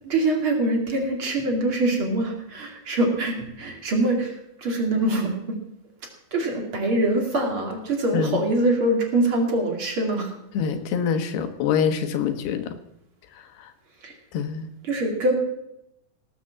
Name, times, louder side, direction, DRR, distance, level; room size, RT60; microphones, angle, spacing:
voice 1, 0.0-4.4 4.6-5.6 6.3-10.3 14.0-14.1 14.8-15.3, right 2 dB, 35° right, 2 dB, 2.8 m, -24 dB
voice 2, 10.5-12.8 13.3-13.7 14.3-14.7, left 7 dB, 90° left, 7 dB, 3.4 m, -25 dB
18.5 x 8.1 x 7.5 m, 0.81 s
omnidirectional pair, 4.5 m